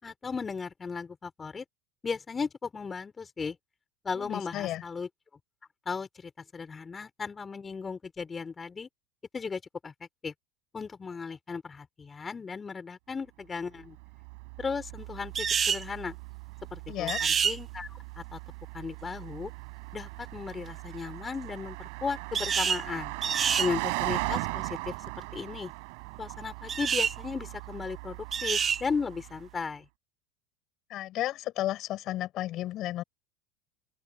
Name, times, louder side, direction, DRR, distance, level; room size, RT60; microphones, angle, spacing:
voice 1, 0.0-1.6 2.0-3.6 4.0-5.1 5.9-8.9 9.3-9.9 10.2-10.3 10.7-14.0 14.6-16.2 16.7-18.4 18.7-19.5 19.9-23.1 23.6-25.7 26.2-29.9, left 5 dB, 20° left, 5.0 m, -36 dB
voice 2, 4.2-4.8 16.9-17.2 30.9-33.0, left 14 dB, 50° left, 6.1 m, -33 dB
Car passing by, 13.8-29.5, right 34 dB, 65° right, 6.1 m, -39 dB
sound 1, 15.3-15.8 17.1-17.6 22.3-22.8 23.2-23.7 26.7-27.1 28.3-28.8, right 7 dB, 30° right, 1.1 m, -27 dB
open air
hypercardioid pair, 85°, 0 cm